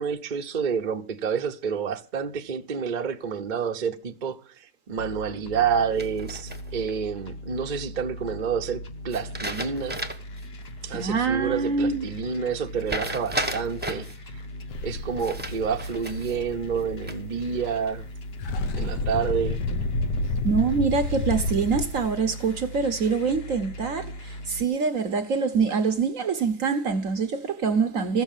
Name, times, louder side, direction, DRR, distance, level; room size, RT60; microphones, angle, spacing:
voice 1, 0.0-10.0 10.8-14.1 14.8-18.1 18.7-19.6, right 6 dB, 35° right, 0.9 m, -29 dB
sound 1, 5.0-24.6, equal, 40° left, 1.2 m, -39 dB
sound 2, 6.0-6.9 9.1-10.4 10.8-10.9 12.9-14.2 15.2-16.4 16.8-17.4, right 1 dB, 5° right, 1.0 m, -33 dB
voice 2, 10.9-12.1 20.4-28.2, right 5 dB, 55° right, 1.2 m, -25 dB
sound 3, 14.7-17.6 17.9-18.0 18.3-22.1, left 2 dB, 75° left, 1.5 m, -30 dB
14.5 x 7.2 x 7.3 m
omnidirectional pair, 1.9 m